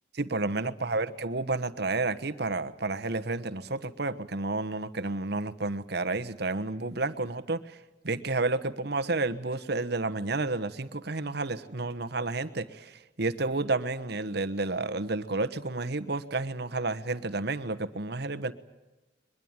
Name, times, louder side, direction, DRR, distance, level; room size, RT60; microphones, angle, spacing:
voice 1, 0.1-7.8 8.0-18.5, right 3 dB, 60° right, 11 dB, 1.2 m, -31 dB
22.0 x 22.0 x 9.0 m, 1.1 s
head